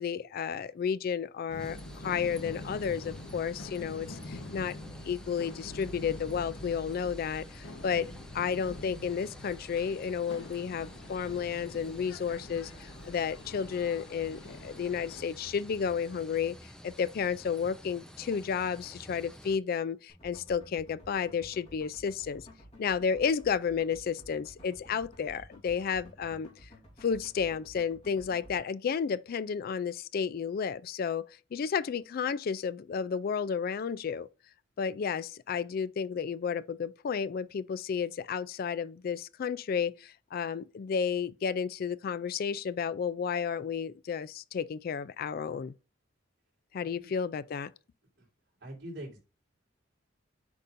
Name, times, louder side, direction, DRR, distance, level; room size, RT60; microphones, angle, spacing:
voice 1, 0.0-4.8 5.0-8.1 8.3-22.4 22.8-26.7 27.0-31.2 31.5-34.3 34.8-45.7 46.7-47.7, left 6 dB, 50° left, 0.3 m, -32 dB
sound 1, 1.5-15.2, left 1 dB, 75° left, 1.1 m, -45 dB
sound 2, 1.6-19.6, equal, 5° left, 0.7 m, -51 dB
sound 3, 20.1-28.6, equal, 35° left, 3.2 m, -53 dB
voice 2, 48.6-49.2, right 1 dB, 60° right, 3.5 m, -43 dB
8.3 x 5.2 x 2.6 m
head